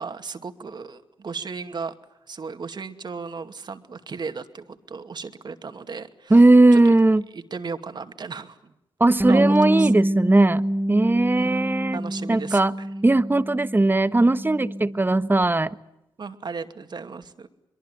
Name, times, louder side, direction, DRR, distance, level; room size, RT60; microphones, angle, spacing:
voice 1, 0.0-1.9 2.3-6.4 6.7-6.9 7.3-8.7 9.3-9.9 11.3-12.9 16.2-17.5, right 5 dB, 55° right, 8 dB, 2.5 m, -35 dB
voice 2, 6.3-7.2 9.0-10.6 10.9-12.0 12.3-12.7 13.0-15.8, right 2 dB, 20° right, 13 dB, 1.4 m, -18 dB
Bass guitar, 9.2-15.4, equal, 5° right, 1.9 m, -27 dB
23.5 x 23.0 x 9.3 m, 0.87 s
supercardioid pair, 50°, 9 cm